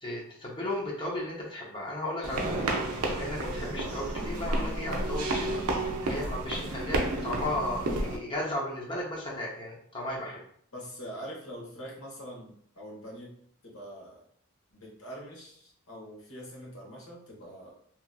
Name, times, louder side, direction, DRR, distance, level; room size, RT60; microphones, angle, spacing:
voice 1, 0.0-10.4, left 1 dB, 20° left, -3 dB, 0.7 m, -35 dB
sound 1, 2.2-8.2, right 2 dB, 90° right, 0.5 m, -31 dB
voice 2, 10.7-13.4 13.6-14.3 14.7-17.7, equal, 70° left, -3 dB, 1.0 m, -44 dB
2.9 x 2.4 x 2.3 m, 0.62 s
head